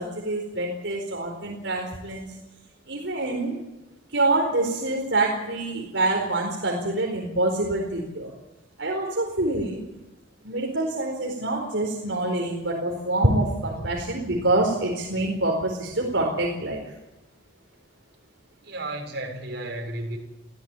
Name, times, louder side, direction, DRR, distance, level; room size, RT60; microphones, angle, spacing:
voice 1, 0.0-2.3 2.9-3.6 4.1-8.3 8.8-9.8 10.4-16.8, right 2 dB, 75° right, 0 dB, 4.4 m, -26 dB
voice 2, 18.6-20.2, right 1 dB, 60° right, 1 dB, 6.8 m, -33 dB
26.0 x 16.5 x 9.1 m, 1.0 s
head